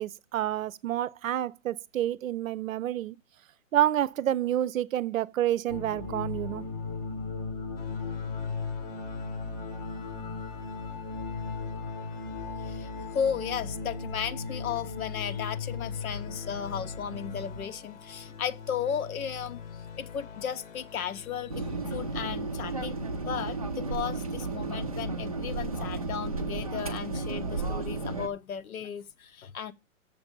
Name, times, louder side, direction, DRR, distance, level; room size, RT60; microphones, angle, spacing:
voice 1, 0.0-3.2 3.7-6.6, right 12 dB, 75° right, 0.6 m, -28 dB
sound 1, 5.7-17.7, left 4 dB, 20° left, 0.7 m, -37 dB
sound 2, 7.8-23.7, left 7 dB, 60° left, 0.9 m, -45 dB
voice 2, 12.6-19.6 20.0-29.7, left 8 dB, 90° left, 0.9 m, -35 dB
sound 3, 21.5-28.3, right 3 dB, 30° right, 0.4 m, -33 dB
6.9 x 6.7 x 5.2 m
hypercardioid pair, 165°, 41 cm